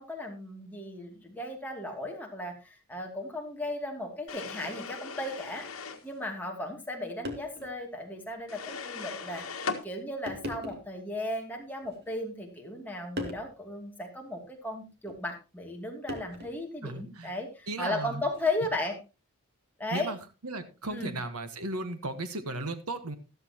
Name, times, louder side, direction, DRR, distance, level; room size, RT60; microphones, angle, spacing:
voice 1, 0.0-5.7 6.0-9.5 9.8-19.0 19.8-20.1 20.9-21.2, left 1 dB, 10° left, 0 dB, 2.5 m, -36 dB
sound 1, 4.3-6.1 8.5-9.8, left 5 dB, 70° left, 1.7 m, -38 dB
sound 2, 5.5-5.7 6.8-6.9 7.2-7.7 8.3-8.4 9.3-9.5 10.3-11.0 11.8-12.5 13.2-13.5 15.0-15.2 16.1-16.7 18.2-18.5, left 1 dB, 45° right, 2.4 m, -40 dB
voice 2, 16.8-17.3 17.7-18.2 19.9-20.2 20.4-23.2, right 2 dB, 85° right, 10 dB, 1.4 m, -35 dB
13.5 x 13.5 x 2.9 m, 0.29 s
head